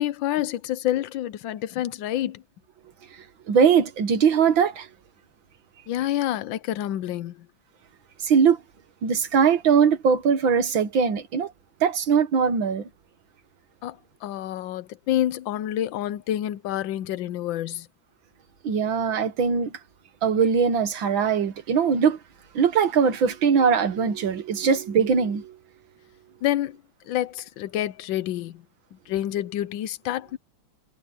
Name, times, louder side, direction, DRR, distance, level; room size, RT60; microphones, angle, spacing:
voice 1, 0.0-2.4 5.9-7.5 13.8-17.9 26.4-26.8 27.1-28.6 28.9-30.4, left 12 dB, 80° left, 1.4 m, -28 dB
voice 2, 3.5-4.9 8.2-8.6 9.0-11.5 11.8-12.9 18.6-19.7 20.2-22.2 22.6-25.6, right 6 dB, 80° right, 2.2 m, -21 dB
omnidirectional pair, 2.1 m